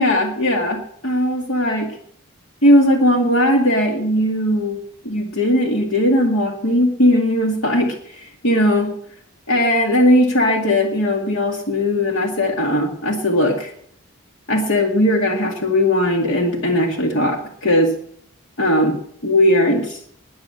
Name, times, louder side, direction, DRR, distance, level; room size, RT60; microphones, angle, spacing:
voice 1, 0.0-1.9 2.6-4.8 5.0-8.9 9.5-13.7 14.5-17.9 18.6-18.9 19.2-20.0, left 1 dB, 65° left, 2 dB, 2.0 m, -18 dB
21.0 x 7.5 x 7.7 m, 0.65 s
head